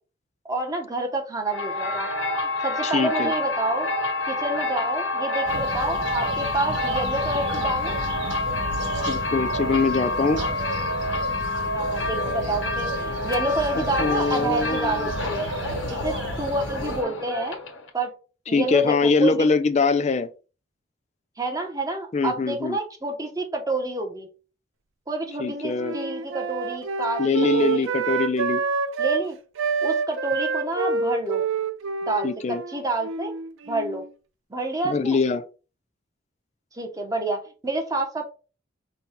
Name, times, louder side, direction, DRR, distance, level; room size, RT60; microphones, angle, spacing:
voice 1, 0.5-2.1 2.6-3.9 4.3-8.0 11.7-15.5 15.9-17.6 17.9-18.1 18.5-19.5 21.4-24.3 25.1-27.2 27.5-27.9 29.0-29.4 29.8-31.4 32.0-33.3 33.7-34.0 34.5-35.2 36.7-38.2, right 2 dB, 20° right, 0.8 m, -28 dB
sound 1, 1.5-17.9, left 2 dB, 85° left, 1.3 m, -28 dB
voice 2, 2.8-3.3 9.1-10.4 14.0-15.1 18.5-20.3 22.1-22.8 25.4-26.0 27.2-28.6 32.2-32.6 34.8-35.4, left 4 dB, 35° left, 0.3 m, -23 dB
sound 2, 5.5-17.0, right 1 dB, 70° right, 1.1 m, -33 dB
Wind instrument woodwind instrument, 25.3-29.3 29.6-34.1, right 5 dB, 90° right, 0.5 m, -27 dB
5.3 x 2.3 x 4.3 m
head